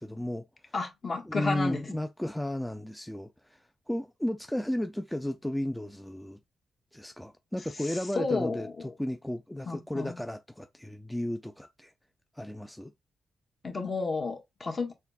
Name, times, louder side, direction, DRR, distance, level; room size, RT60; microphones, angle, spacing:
voice 1, 0.0-0.7 1.3-6.4 6.9-11.9 12.3-12.9, left 1 dB, 5° left, 0.4 m, -34 dB
voice 2, 0.7-1.8 7.8-8.9 9.7-10.2 13.6-14.9, left 3 dB, 40° left, 1.3 m, -32 dB
4.3 x 2.2 x 4.1 m
cardioid pair, 75°, 0 cm